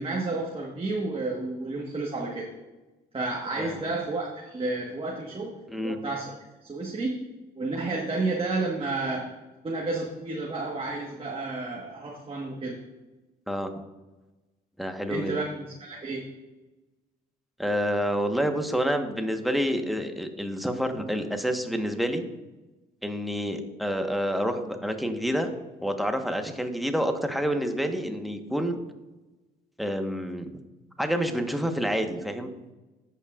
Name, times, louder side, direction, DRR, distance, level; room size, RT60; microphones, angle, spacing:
voice 1, 0.0-2.5 3.1-6.3 6.7-7.2 7.5-9.3 9.6-12.8 15.1-16.3, right 3 dB, 30° right, -2 dB, 1.4 m, -31 dB
voice 2, 3.6-3.9 5.7-6.0 13.5-13.7 14.8-15.3 17.6-22.2 23.0-25.5 25.8-28.8 29.8-30.5 31.0-32.5, equal, ahead, 5 dB, 1.2 m, -28 dB
16.0 x 5.6 x 2.5 m, 1.1 s
supercardioid pair, 65°, 19 cm